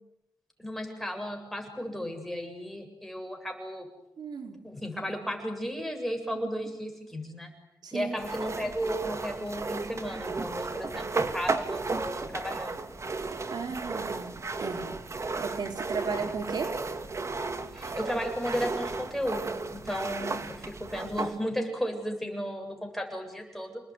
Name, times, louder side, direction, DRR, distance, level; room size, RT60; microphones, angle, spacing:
voice 1, 0.6-3.9 4.6-7.5 7.9-12.9 17.7-23.8, equal, ahead, 3 dB, 7.8 m, -34 dB
voice 2, 4.2-4.6 7.8-8.2 13.5-14.9 15.4-16.8, right 5 dB, 70° right, 4 dB, 4.0 m, -35 dB
sound 1, 8.2-21.4, right 3 dB, 40° right, 2.2 m, -34 dB
29.0 x 20.0 x 9.7 m, 0.84 s
cardioid pair, 90°, 7 cm